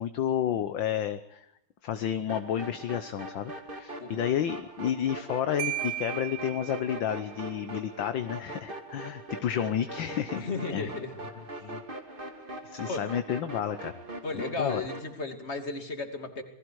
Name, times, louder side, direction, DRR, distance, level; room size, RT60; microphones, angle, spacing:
voice 1, 0.0-1.5 1.8-10.9 11.6-11.8 12.6-13.9 14.6-14.8, left 9 dB, 65° left, 10 dB, 1.6 m, -31 dB
sound 1, 2.3-15.1, right 1 dB, 25° right, 2.4 m, -42 dB
Marimba xylophone, 5.6-7.3, right 14 dB, 75° right, 1.9 m, -36 dB
voice 2, 10.3-11.1 11.5-11.7 12.8-13.1 14.2-16.4, left 3 dB, 30° left, 6 dB, 3.0 m, -34 dB
28.5 x 20.0 x 4.8 m, 0.73 s
omnidirectional pair, 2.4 m